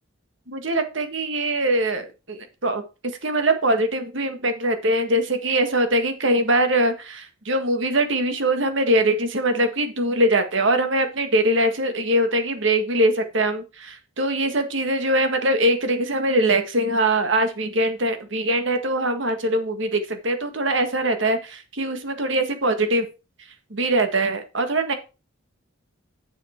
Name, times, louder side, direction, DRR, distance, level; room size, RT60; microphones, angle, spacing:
voice 1, 0.5-2.8 3.2-23.1 23.7-24.9, right 1 dB, 60° right, 7 dB, 1.6 m, -22 dB
8.1 x 7.4 x 4.4 m, 0.30 s
head